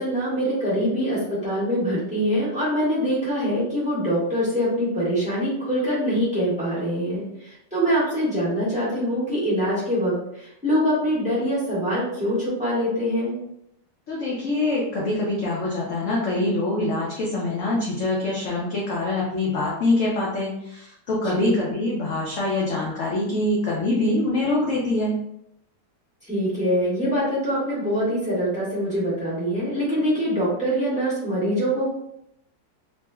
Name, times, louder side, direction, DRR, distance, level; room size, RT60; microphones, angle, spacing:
voice 1, 0.0-13.4 21.2-21.6 26.3-32.0, equal, 5° right, -9 dB, 1.1 m, -24 dB
voice 2, 14.1-25.1, left 2 dB, 65° left, -5 dB, 0.8 m, -24 dB
3.1 x 3.0 x 2.2 m, 0.79 s
omnidirectional pair, 2.0 m